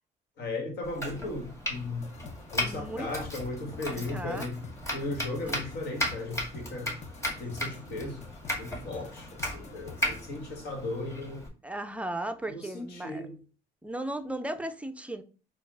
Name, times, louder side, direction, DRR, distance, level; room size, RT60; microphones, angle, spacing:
voice 1, 0.4-2.1 2.5-4.6 4.9-7.0 7.4-11.4 12.5-13.4, left 2 dB, 75° left, 1.6 m, -36 dB
Domestic sounds home sounds, 0.8-11.5, equal, 15° left, 1.7 m, -36 dB
sound 1, 2.0-10.4, left 5 dB, 40° left, 0.6 m, -48 dB
voice 2, 2.6-3.1 3.9-4.5 5.5-5.6 11.6-13.2 13.8-15.2, right 1 dB, 5° right, 0.4 m, -36 dB
4.3 x 2.4 x 4.7 m
cardioid pair, 110°, 17 cm